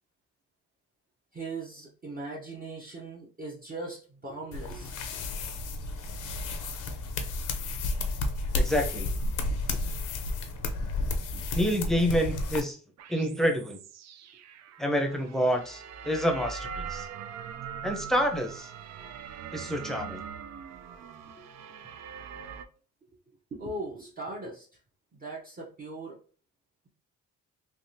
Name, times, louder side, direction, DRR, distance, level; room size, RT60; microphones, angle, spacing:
voice 1, 1.3-5.2 21.4-21.5 23.5-24.7 25.1-26.2, right 2 dB, 30° right, -3 dB, 0.8 m, -39 dB
sound 1, 4.5-12.6, left 2 dB, 80° left, 0.7 m, -32 dB
voice 2, 8.5-9.1 9.7-9.8 11.5-12.8 13.1-13.8 14.8-17.1 17.8-18.7 19.5-20.2, equal, ahead, 3 dB, 0.7 m, -28 dB
sound 2, 13.0-22.6, right 7 dB, 60° right, 0.4 m, -42 dB
3.4 x 2.4 x 2.7 m, 0.39 s
cardioid pair, 90°, 30 cm